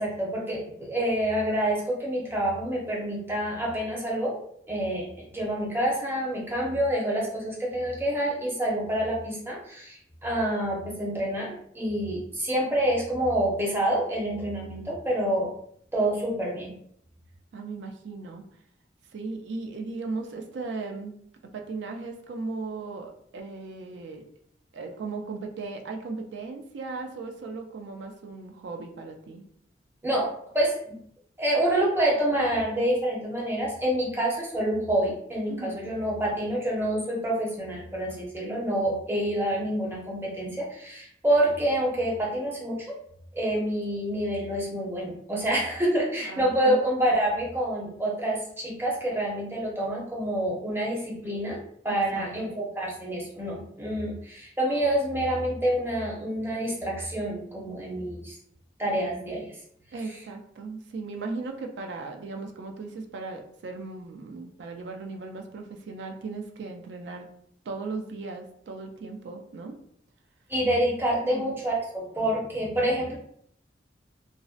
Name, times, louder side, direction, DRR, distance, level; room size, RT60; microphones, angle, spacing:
voice 1, 0.0-4.4 4.7-15.5 15.9-16.7 30.0-30.3 30.5-31.0 31.4-42.9 43.3-58.3 58.8-59.5 70.5-73.2, right 1 dB, 15° right, -3 dB, 0.6 m, -27 dB
voice 2, 17.5-18.5 19.1-21.2 21.5-24.2 24.7-29.5 35.5-35.8 46.2-46.8 51.9-52.5 59.9-67.3 67.7-69.8 71.2-71.5, right 3 dB, 85° right, 3 dB, 0.3 m, -37 dB
2.5 x 2.0 x 2.4 m, 0.67 s
head